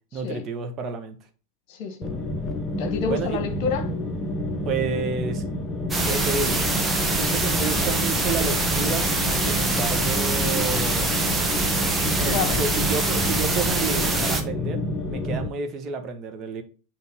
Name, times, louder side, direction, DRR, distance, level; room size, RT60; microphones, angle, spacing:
voice 1, 0.1-1.2 3.1-3.4 4.6-5.4 6.0-6.7 7.1-11.1 12.2-14.8 15.1-16.6, right 5 dB, 30° right, 1.4 m, -30 dB
voice 2, 1.7-2.1 2.8-3.9 12.2-12.6, left 5 dB, 40° left, 1.7 m, -28 dB
sound 1, 2.0-15.5, left 1 dB, 20° left, 1.2 m, -29 dB
sound 2, 5.9-14.4, right 2 dB, 10° right, 1.2 m, -24 dB
8.4 x 3.7 x 4.7 m
figure-of-eight pair, 90°, 0 cm